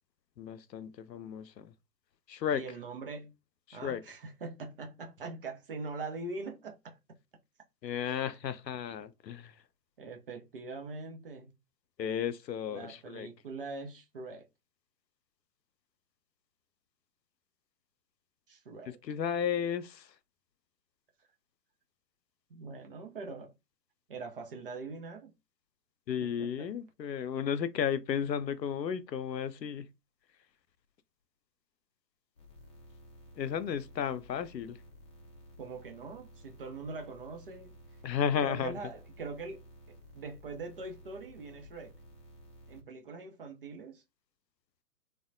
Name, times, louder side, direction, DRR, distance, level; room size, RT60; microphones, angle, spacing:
voice 1, 0.4-1.7 2.3-2.6 3.7-4.0 7.8-9.6 12.0-13.3 18.9-20.2 26.1-29.9 33.4-34.8 38.0-38.8, left 8 dB, 90° left, 0.6 m, -34 dB
voice 2, 2.5-3.3 3.7-7.0 8.0-8.2 10.0-11.5 12.7-14.5 18.5-19.0 22.5-23.5 24.1-25.3 26.2-26.7 35.6-37.7 38.4-39.6 40.1-41.9 42.7-44.0, right 3 dB, 35° right, 0.5 m, -42 dB
sound 1, 32.4-42.8, equal, 20° left, 0.6 m, -54 dB
3.3 x 2.1 x 2.5 m
figure-of-eight pair, 135°, 49 cm